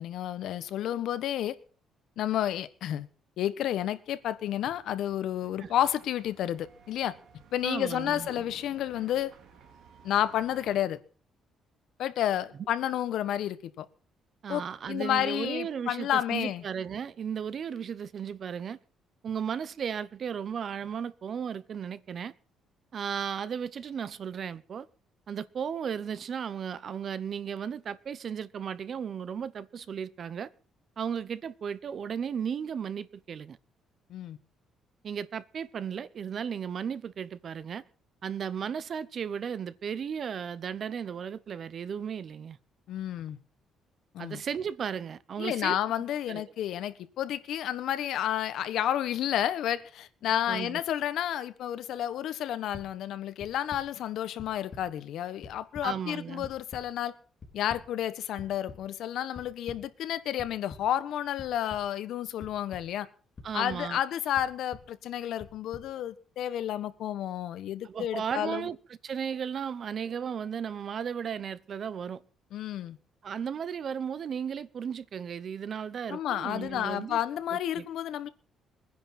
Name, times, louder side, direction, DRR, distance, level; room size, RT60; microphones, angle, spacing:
voice 1, 0.0-1.6 2.2-3.1 3.4-7.1 7.5-9.3 10.0-11.0 12.0-13.9 14.5-16.6 34.1-34.4 42.9-43.4 44.1-44.4 45.4-57.1 57.5-63.1 63.5-68.7 72.5-73.0 76.1-78.3, left 11 dB, 65° left, 1.3 m, -31 dB
sound 1, 4.1-10.8, right 7 dB, 60° right, 3.4 m, -54 dB
voice 2, 7.6-8.3 14.4-18.8 19.2-22.3 22.9-24.9 25.3-30.5 31.0-33.6 35.0-37.8 38.2-42.6 44.2-45.8 46.3-46.4 50.5-50.8 55.8-56.4 63.4-64.0 67.8-68.8 69.0-72.2 73.2-77.2 77.5-77.8, right 7 dB, 40° right, 0.8 m, -35 dB
sound 2, 52.7-52.8 53.4-53.8 54.4-54.8 55.2-55.8 56.4-56.8 57.4-57.8 58.4-58.8 59.3-59.8 60.4-60.8 61.4-61.8 62.4-62.8 63.4-63.8 64.3-64.8 65.4-65.8, left 4 dB, 30° left, 4.7 m, -45 dB
22.0 x 10.5 x 5.9 m
cardioid pair, 155°, 0 cm